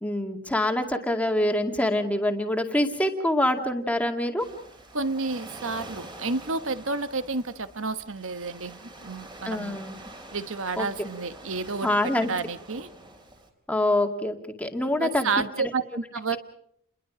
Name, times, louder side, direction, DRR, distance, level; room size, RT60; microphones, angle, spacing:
voice 1, 0.0-4.5 9.4-10.0 10.8-10.9 11.8-12.3 13.7-15.3 15.6-15.7, left 1 dB, 5° left, 2.1 m, -25 dB
Waves surf, 4.4-13.5, right 2 dB, 20° right, 3.7 m, -46 dB
voice 2, 4.9-9.8 10.3-11.9 12.2-12.9 15.0-16.4, right 4 dB, 60° right, 1.2 m, -30 dB
30.0 x 22.0 x 5.1 m
head